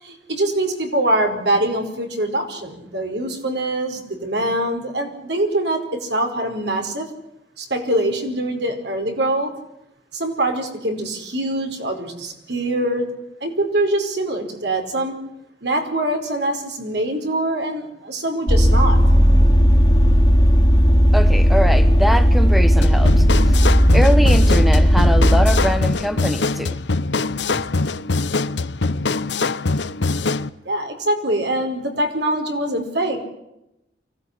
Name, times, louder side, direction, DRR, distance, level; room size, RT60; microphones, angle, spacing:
voice 1, 0.0-7.1 7.6-9.5 10.1-13.1 13.4-15.1 15.6-19.0 30.6-33.2, right 1 dB, 65° right, 4 dB, 5.0 m, -23 dB
Vehicle, 18.5-25.8, equal, 25° left, 2.5 m, -14 dB
voice 2, 21.1-23.6 23.9-26.8 27.5-27.7, equal, ahead, 10 dB, 1.0 m, -23 dB
sound 1, 22.8-30.5, left 3 dB, 75° left, 0.9 m, -23 dB
24.5 x 17.5 x 10.0 m, 0.86 s
head